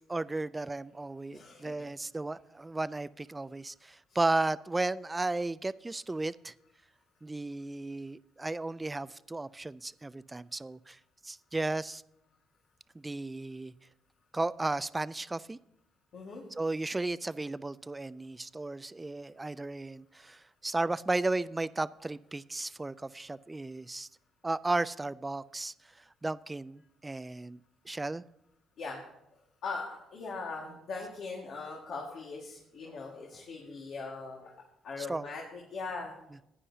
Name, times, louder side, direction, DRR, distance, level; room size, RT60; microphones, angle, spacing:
voice 1, 0.0-6.5 7.2-11.0 11.2-12.0 12.9-13.7 14.3-15.6 16.6-24.1 24.4-25.7 26.2-27.6 27.9-28.2 35.0-35.3, right 2 dB, 20° right, 17 dB, 0.3 m, -34 dB
voice 2, 1.3-1.9 4.1-4.2 16.1-16.4 28.8-29.0 29.6-34.5 34.8-36.1, left 4 dB, 65° left, -2 dB, 1.8 m, -40 dB
15.5 x 9.7 x 2.8 m, 0.84 s
supercardioid pair, 75°, 0 cm